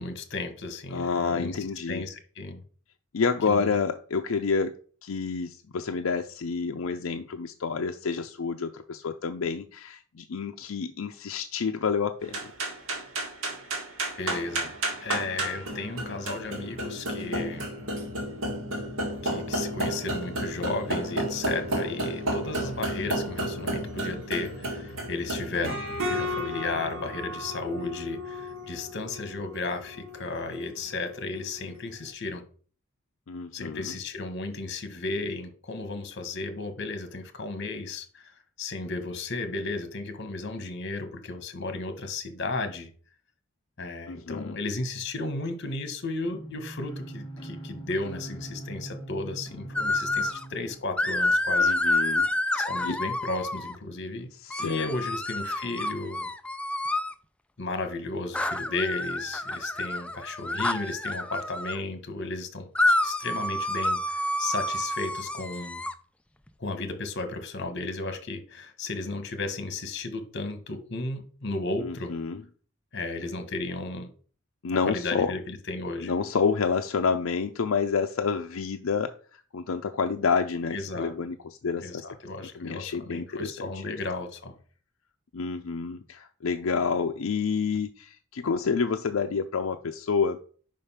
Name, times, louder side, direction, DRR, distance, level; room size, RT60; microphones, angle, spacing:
voice 1, 0.0-1.6 1.9-2.6 3.5-3.8 14.2-14.7 15.0-17.7 19.2-32.4 33.5-42.9 43.8-51.7 52.5-54.3 54.6-56.3 57.6-65.8 66.6-72.1 72.9-74.1 74.8-76.1 80.7-81.1 81.8-84.6, left 3 dB, 55° left, 1.3 m, -34 dB
voice 2, 0.9-2.0 3.1-4.7 5.0-12.5 33.3-33.9 44.1-44.5 51.6-52.3 52.8-53.0 54.4-54.9 71.8-72.4 74.6-75.3 76.0-81.4 81.6-82.0 82.6-83.8 85.3-90.4, left 5 dB, 85° left, 0.5 m, -29 dB
sound 1, 12.2-31.8, right 1 dB, 90° right, 1.9 m, -32 dB
sound 2, 46.2-50.8, right 1 dB, 20° left, 1.2 m, -41 dB
sound 3, 49.8-50.4 51.0-53.8 54.5-57.1 58.3-61.8 62.8-65.9, left 1 dB, 5° left, 0.3 m, -28 dB
5.3 x 5.1 x 5.6 m
head